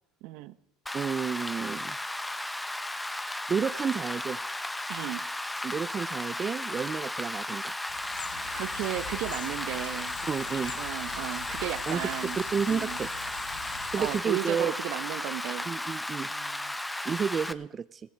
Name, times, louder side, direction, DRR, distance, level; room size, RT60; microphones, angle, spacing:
voice 1, 0.2-0.6 4.9-5.2 8.5-10.1 10.7-12.4 12.7-13.0 14.0-15.7 16.3-16.8, right 15 dB, 70° right, 14 dB, 1.0 m, -35 dB
Rain, 0.9-17.5, left 1 dB, 5° left, 0.9 m, -35 dB
voice 2, 0.9-2.0 3.5-4.4 5.6-7.8 10.3-10.7 11.9-12.0 12.4-13.1 13.9-14.7 15.7-16.3 17.0-18.0, right 6 dB, 30° right, 14 dB, 0.6 m, -31 dB
sound 1, 7.9-14.2, left 8 dB, 90° left, 1.2 m, -43 dB
15.5 x 14.5 x 4.6 m, 0.71 s
supercardioid pair, 95°, 0 cm